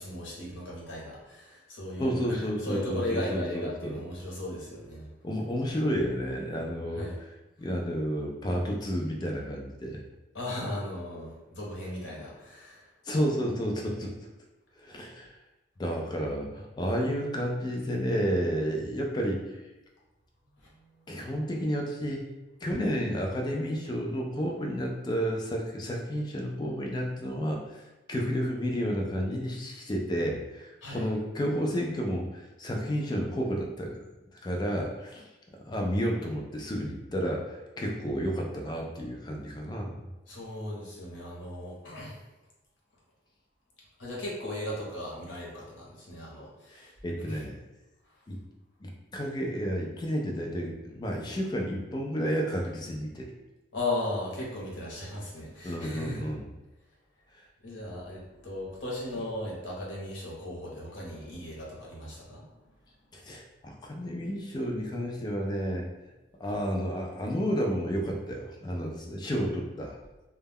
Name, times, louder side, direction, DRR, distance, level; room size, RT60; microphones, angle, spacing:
voice 1, 0.0-5.1 6.9-7.2 10.3-12.9 20.6-21.1 30.8-31.1 40.3-42.2 44.0-46.9 47.2-47.4 53.7-56.2 57.6-62.5, left 1 dB, 80° left, -4 dB, 0.8 m, -37 dB
voice 2, 2.0-4.0 5.2-7.1 7.6-10.0 13.1-14.1 14.8-15.3 15.8-19.4 21.1-22.2 22.6-27.6 28.1-34.1 34.3-35.2 35.6-39.9 46.7-47.6 48.3-48.4 48.8-53.3 55.6-56.5 63.1-65.9 66.4-70.0, equal, 20° left, 0 dB, 0.3 m, -31 dB
2.2 x 2.1 x 3.4 m, 1.0 s
head